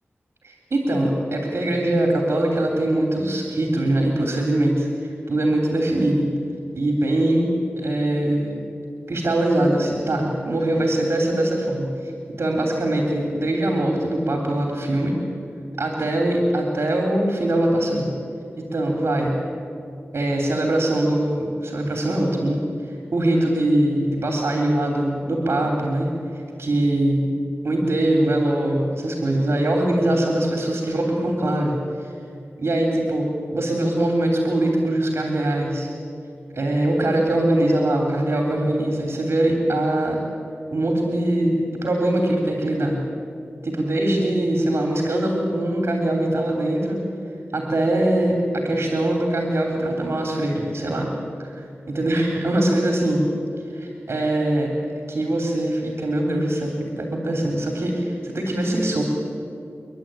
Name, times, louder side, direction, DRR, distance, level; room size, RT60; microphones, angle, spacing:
voice 1, 0.4-6.3 6.7-8.5 9.1-12.1 12.4-15.2 15.8-18.1 18.6-19.4 20.1-22.6 22.9-27.2 27.6-31.7 32.0-32.1 32.6-35.9 36.5-40.2 40.7-43.0 43.6-47.0 47.5-51.1 51.4-53.2 53.7-54.7 55.1-59.0, right 1 dB, 65° right, 1 dB, 3.3 m, -22 dB
29.5 x 11.5 x 9.0 m, 2.4 s
wide cardioid pair, 70°, 5 cm